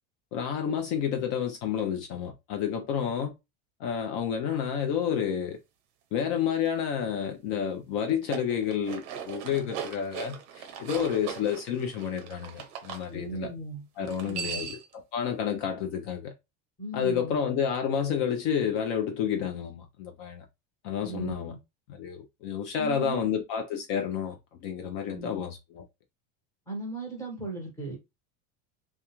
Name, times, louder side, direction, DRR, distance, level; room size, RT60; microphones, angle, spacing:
voice 1, 0.3-3.3 3.8-5.6 6.1-13.5 14.0-14.8 15.1-16.3 16.9-20.4 20.8-21.5 21.9-25.8, left 8 dB, 55° left, 0.5 m, -30 dB
sound 1, 8.1-13.0 14.0-14.9, right 7 dB, 40° right, 0.6 m, -39 dB
voice 2, 13.1-13.8 14.2-14.7 16.8-17.4 21.0-21.6 22.7-23.3 25.1-25.5 26.7-28.0, right 2 dB, 5° left, 0.9 m, -37 dB
2.3 x 2.2 x 2.9 m
cardioid pair, 165°, 43 cm